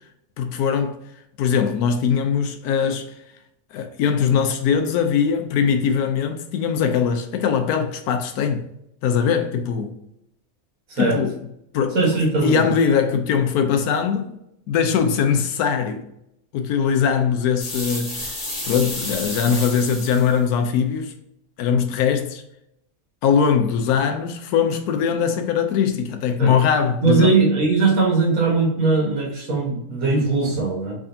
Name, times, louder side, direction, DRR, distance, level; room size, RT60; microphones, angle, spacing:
voice 1, 0.4-1.0 1.4-3.0 3.7-8.7 9.0-10.0 11.0-11.4 11.7-12.0 12.4-14.3 14.7-16.0 16.5-21.1 21.6-22.4 23.2-27.4, left 7 dB, 85° left, 1.1 m, -21 dB
voice 2, 11.9-12.7 26.4-26.5 27.0-31.0, right 3 dB, 65° right, 1.7 m, -20 dB
sound 1, 17.6-20.3, left 1 dB, 25° left, 1.3 m, -31 dB
3.7 x 3.3 x 2.6 m
omnidirectional pair, 1.6 m